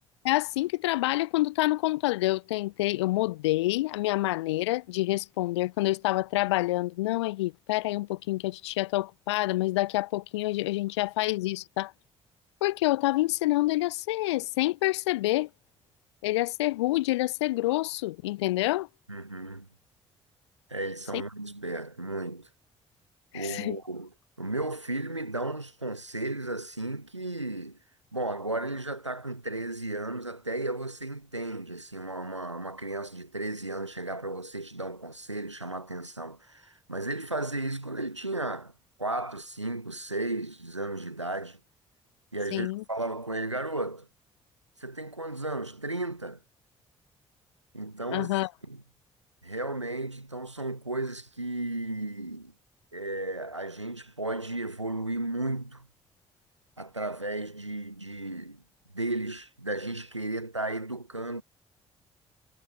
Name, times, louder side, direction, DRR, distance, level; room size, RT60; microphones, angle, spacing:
voice 1, 0.2-11.9 12.6-15.5 16.2-18.9 21.1-21.2 23.3-23.8 42.5-42.8 48.1-48.5, left 18 dB, 75° left, 0.6 m, -27 dB
voice 2, 19.1-19.7 20.7-22.5 23.3-24.1 24.4-27.8 28.1-38.7 39.0-41.6 42.3-44.1 44.8-46.4 47.7-48.3 48.7-48.8 49.4-52.5 52.9-55.9 56.8-58.6 58.9-61.4, right 2 dB, 90° right, 1.2 m, -34 dB
figure-of-eight pair, 45°, 15 cm